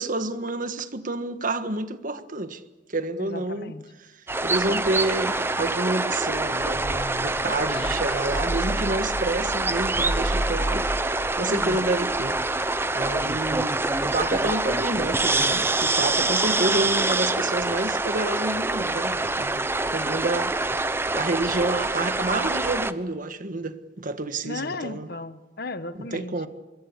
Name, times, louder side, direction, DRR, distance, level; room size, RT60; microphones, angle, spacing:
voice 1, 0.0-2.6 2.9-3.7 4.4-10.9 11.4-12.7 12.9-20.6 21.1-25.1 26.1-26.5, right 2 dB, 50° right, 1.5 m, -29 dB
voice 2, 3.2-3.8 11.5-11.8 24.4-26.5, left 2 dB, 60° left, 1.4 m, -35 dB
sound 1, 4.3-22.9, right 2 dB, 15° right, 0.9 m, -25 dB
Laughter, 4.9-7.1 7.6-9.4, left 3 dB, 35° left, 3.0 m, -45 dB
26.0 x 22.5 x 8.4 m
head